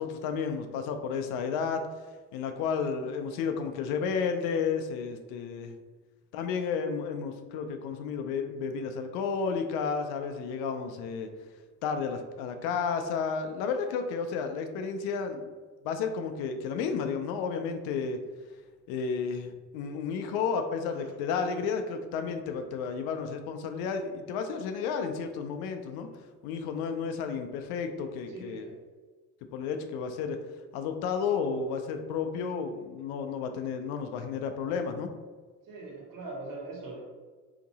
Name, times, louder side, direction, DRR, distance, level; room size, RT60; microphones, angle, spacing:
voice 1, 0.0-1.9 2.3-5.8 6.3-11.3 11.8-15.5 15.8-18.2 18.9-26.1 26.4-28.7 29.5-30.4 30.7-35.1, left 6 dB, 70° left, 6 dB, 0.6 m, -32 dB
voice 2, 28.3-28.8 35.6-37.0, right 2 dB, 55° right, -2 dB, 1.4 m, -42 dB
2.9 x 2.6 x 3.9 m, 1.4 s
hypercardioid pair, 65°, 38 cm